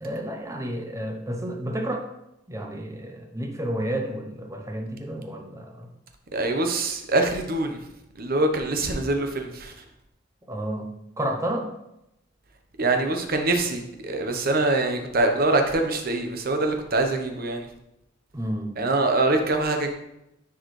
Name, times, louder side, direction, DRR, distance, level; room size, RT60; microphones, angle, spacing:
voice 1, 0.0-2.1 2.5-5.9 10.5-10.9 11.2-11.7 18.3-18.8, right 1 dB, 15° right, 3 dB, 0.8 m, -31 dB
voice 2, 6.3-7.8 8.2-9.7 12.8-17.7 18.8-19.9, right 2 dB, 50° right, 5 dB, 0.9 m, -24 dB
10.0 x 4.7 x 3.2 m, 0.87 s
head